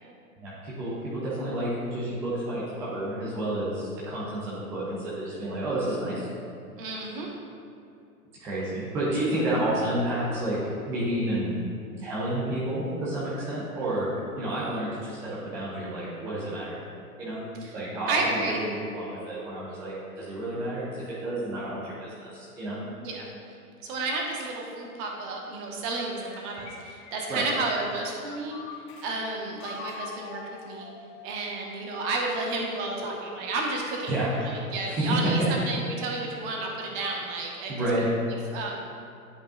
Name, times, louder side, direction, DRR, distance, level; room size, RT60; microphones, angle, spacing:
voice 1, 0.4-6.3 8.4-10.6 10.9-11.6 12.0-14.1 14.4-16.8 17.2-17.4 17.7-22.8 27.3-27.4 34.1-34.3 34.9-35.5 37.7-38.0, right 1 dB, 5° right, -8 dB, 0.3 m, -30 dB
voice 2, 6.8-7.3 17.6-17.7 18.1-18.7 23.0-23.3 23.8-30.9 31.2-37.9 38.5-38.8, right 3 dB, 35° right, 0 dB, 1.2 m, -32 dB
sound 1, 26.2-29.1 29.6-31.4, left 4 dB, 35° left, 0.7 m, -43 dB
10.0 x 5.3 x 2.4 m, 2.5 s
figure-of-eight pair, 105°, 44 cm